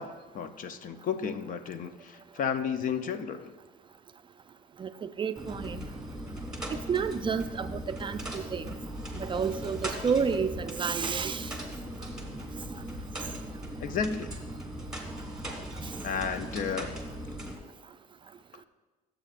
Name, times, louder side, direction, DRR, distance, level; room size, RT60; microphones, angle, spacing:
voice 1, 0.0-3.5 13.8-14.3 16.0-17.0, left 6 dB, 50° left, 10 dB, 0.6 m, -33 dB
voice 2, 4.8-5.9 6.9-8.7 9.1-11.5, right 6 dB, 30° right, 10 dB, 0.4 m, -30 dB
sound 1, 5.4-17.6, equal, 5° right, 1.7 m, -38 dB
14.0 x 7.6 x 2.5 m, 1.3 s
cardioid pair, 110°, 17 cm